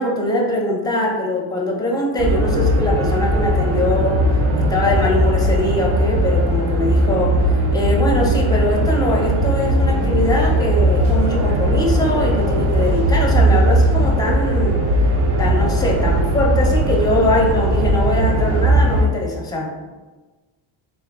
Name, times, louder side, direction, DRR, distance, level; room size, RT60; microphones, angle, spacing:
voice 1, 0.0-4.3 4.5-15.1 15.4-19.7, left 1 dB, 10° left, -2 dB, 0.6 m, -22 dB
sound 1, 2.2-19.0, right 1 dB, 30° right, 0.4 m, -18 dB
3.4 x 3.0 x 3.9 m, 1.2 s
cardioid pair, 145°, 49 cm